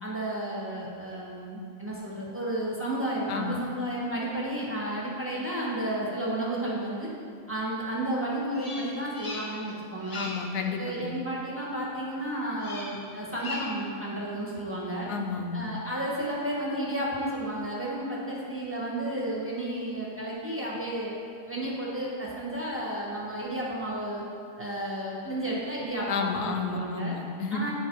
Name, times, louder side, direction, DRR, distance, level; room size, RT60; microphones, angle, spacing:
voice 1, 0.0-7.1 7.5-10.3 10.8-15.1 15.5-21.1 21.5-24.2 24.6-27.2 27.5-27.7, right 1 dB, 10° right, -5 dB, 1.0 m, -32 dB
Bird vocalization bird call bird song, 8.5-9.7 10.0-10.5 12.6-13.0 13.3-13.9, left 2 dB, 35° left, 0.7 m, -39 dB
voice 2, 10.1-11.1 15.1-15.7 26.1-27.6, left 5 dB, 80° left, 4 dB, 1.2 m, -31 dB
10.0 x 3.7 x 4.6 m, 2.3 s
omnidirectional pair, 1.7 m